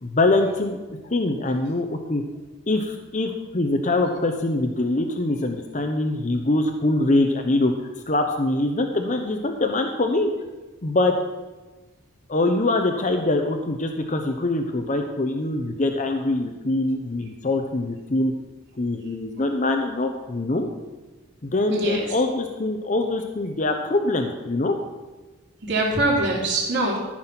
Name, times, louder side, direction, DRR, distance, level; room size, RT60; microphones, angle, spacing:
voice 1, 0.0-2.2 2.7-7.7 8.1-10.3 10.8-11.1 12.3-18.3 18.8-20.7 21.4-24.8, left 2 dB, 35° left, 4 dB, 0.8 m, -23 dB
voice 2, 21.7-22.1 25.6-27.0, right 2 dB, 60° right, -3 dB, 3.3 m, -23 dB
13.5 x 6.2 x 5.9 m, 1.2 s
head